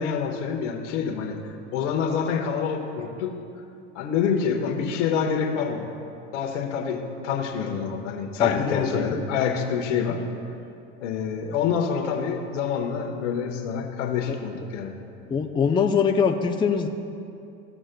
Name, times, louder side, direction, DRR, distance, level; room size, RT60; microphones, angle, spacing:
voice 1, 0.0-1.4 1.7-3.3 3.9-5.9 6.3-10.2 11.0-14.9, left 6 dB, 80° left, 2 dB, 1.2 m, -26 dB
voice 2, 8.4-9.1 14.3-14.4 15.3-16.9, left 6 dB, 15° left, 3 dB, 0.4 m, -23 dB
16.0 x 6.2 x 2.2 m, 2.6 s
hypercardioid pair, 95°, 36 cm